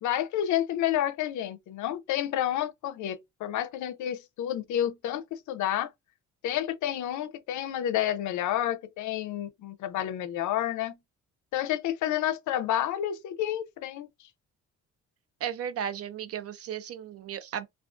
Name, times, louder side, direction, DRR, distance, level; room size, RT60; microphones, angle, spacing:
voice 1, 0.0-5.9 6.4-11.0 11.5-14.1, left 11 dB, 75° left, 0.5 m, -30 dB
voice 2, 15.4-17.7, right 9 dB, 50° right, 0.5 m, -35 dB
2.3 x 2.3 x 2.4 m
cardioid pair, 90°, 30 cm